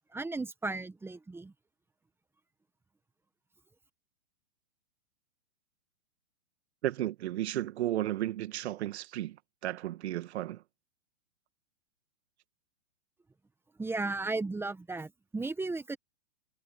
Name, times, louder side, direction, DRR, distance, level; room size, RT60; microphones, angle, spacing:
voice 1, 0.1-1.5 13.8-16.0, right 3 dB, 5° right, 1.6 m, -35 dB
voice 2, 6.8-9.4 9.6-10.6, right 14 dB, 55° right, 2.2 m, -33 dB
hypercardioid pair, 135°, 38 cm